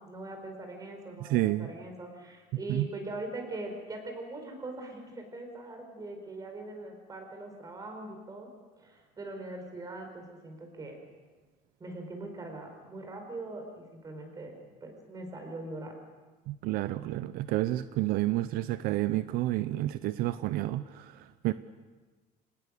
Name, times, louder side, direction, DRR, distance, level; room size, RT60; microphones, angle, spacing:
voice 1, 0.0-8.5 8.8-11.0 11.8-15.9, right 2 dB, 25° right, 4 dB, 5.0 m, -41 dB
voice 2, 1.2-1.7 2.7-2.9 16.5-21.5, right 16 dB, 75° right, 14 dB, 0.6 m, -30 dB
26.0 x 19.0 x 6.7 m, 1.3 s
cardioid pair, 145°, 16 cm